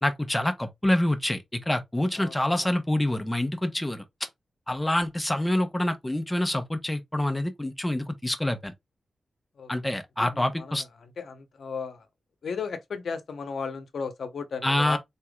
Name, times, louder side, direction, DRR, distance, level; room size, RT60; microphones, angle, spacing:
voice 1, 0.0-4.0 4.7-8.7 9.7-10.8 14.6-15.0, left 1 dB, 10° left, 1.0 m, -26 dB
voice 2, 2.2-2.7 9.6-9.7 10.2-10.8 11.2-12.0 12.4-15.0, left 5 dB, 70° left, 0.9 m, -35 dB
4.4 x 3.5 x 2.3 m
cardioid pair, 85°, 0 cm